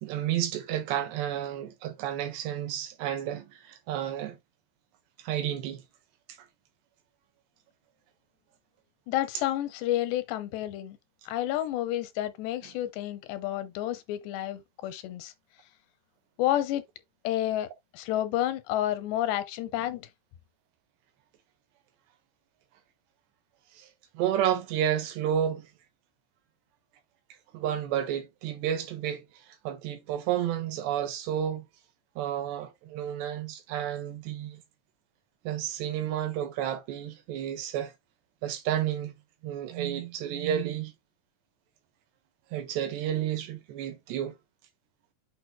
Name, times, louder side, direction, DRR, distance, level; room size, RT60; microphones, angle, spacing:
voice 1, 0.0-4.4 5.2-5.8 12.6-12.7 23.8-23.9 24.2-25.7 27.5-31.7 32.2-34.6 35.5-37.9 38.4-39.2 39.4-40.9 42.5-44.4, right 10 dB, 90° right, 3.6 m, -31 dB
voice 2, 9.1-11.0 11.3-15.3 16.4-16.8 17.2-17.7 17.9-20.1, left 13 dB, 85° left, 3.2 m, -30 dB
8.9 x 5.9 x 2.2 m
omnidirectional pair, 4.8 m